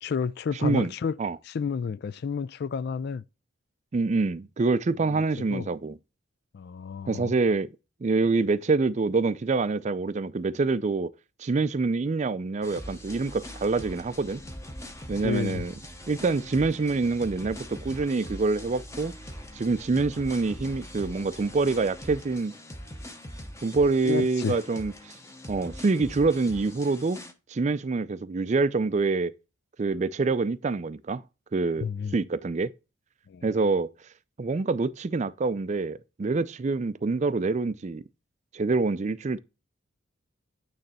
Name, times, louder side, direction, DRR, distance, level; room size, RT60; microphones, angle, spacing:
voice 1, 0.0-1.2 1.4-3.2 5.0-5.7 6.5-7.3 15.2-15.7 24.0-24.6 31.8-32.2 33.3-33.5, left 6 dB, 55° left, 0.3 m, -31 dB
voice 2, 0.6-0.9 1.2-1.4 3.9-6.0 7.1-7.7 8.0-11.1 11.4-14.4 15.1-15.7 16.1-19.1 19.5-22.5 23.6-24.9 25.5-27.2 27.5-29.3 29.8-31.2 31.5-32.7 33.4-33.9 34.4-38.0 38.5-39.4, right 3 dB, 35° right, 0.4 m, -26 dB
sound 1, 12.6-27.3, equal, 15° left, 0.8 m, -42 dB
9.1 x 3.3 x 4.1 m
head